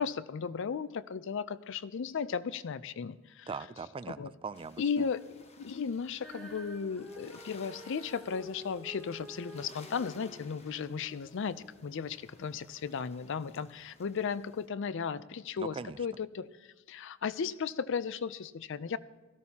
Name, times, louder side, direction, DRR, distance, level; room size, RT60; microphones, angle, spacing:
voice 1, 0.0-3.5 4.2-4.3 4.8-16.5 16.9-19.0, left 6 dB, 65° left, 16 dB, 0.4 m, -35 dB
voice 2, 3.5-5.1 15.6-16.0, right 4 dB, 25° right, 13 dB, 0.4 m, -41 dB
sound 1, 4.5-14.7, left 3 dB, 30° left, 1.1 m, -58 dB
Female singing, 6.2-12.5 13.2-13.3, equal, ahead, 2.4 m, -50 dB
17.5 x 13.5 x 2.8 m, 1.2 s
head